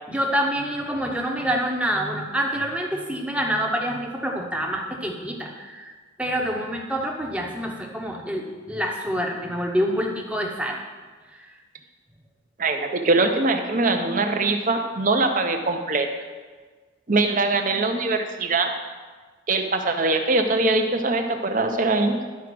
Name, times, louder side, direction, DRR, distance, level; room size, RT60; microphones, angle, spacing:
voice 1, 0.1-5.9 6.2-10.8 11.4-11.5, equal, 5° right, 1 dB, 0.9 m, -27 dB
voice 2, 12.6-16.1 17.1-18.7 19.5-22.2, right 3 dB, 40° right, 5 dB, 0.8 m, -22 dB
11.0 x 4.9 x 6.1 m, 1.4 s
head